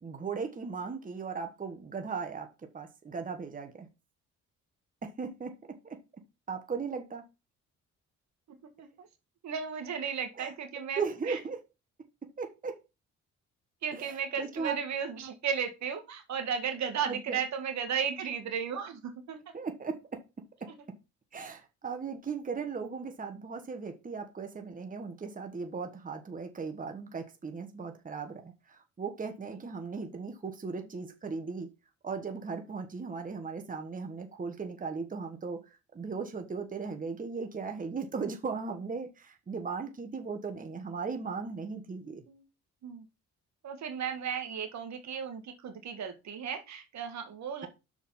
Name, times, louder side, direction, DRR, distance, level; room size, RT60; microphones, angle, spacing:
voice 1, 0.0-2.5 2.7-3.9 5.0-6.0 6.5-7.2 10.4-10.5 11.0-11.6 12.4-12.8 14.0-14.8 17.1-17.4 19.5-20.2 20.6-20.7 21.3-31.7 32.0-35.6 35.9-42.2, right 5 dB, 25° right, 5 dB, 1.3 m, -37 dB
voice 2, 8.6-9.1 9.4-11.4 13.8-19.4 42.3-42.4 42.8-43.1 43.6-47.7, right 7 dB, 65° right, 7 dB, 1.6 m, -35 dB
6.1 x 5.0 x 5.5 m, 0.27 s
cardioid pair, 90°, 30 cm